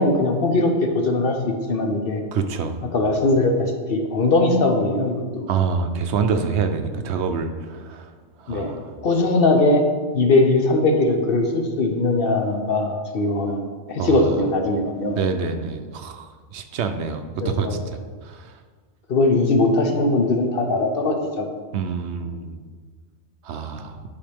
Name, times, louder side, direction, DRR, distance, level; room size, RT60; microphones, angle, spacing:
voice 1, 0.0-1.4 1.7-2.2 2.9-5.5 8.5-8.7 9.0-9.9 10.1-13.6 13.9-15.2 17.4-17.8 19.1-21.4, left 2 dB, 55° left, 3 dB, 0.9 m, -20 dB
voice 2, 2.3-2.8 5.5-8.1 8.4-8.9 14.0-14.4 15.2-18.5 21.7-22.6 23.4-24.0, right 5 dB, 70° right, 7 dB, 0.8 m, -26 dB
10.5 x 4.9 x 3.4 m, 1.5 s
omnidirectional pair, 1.3 m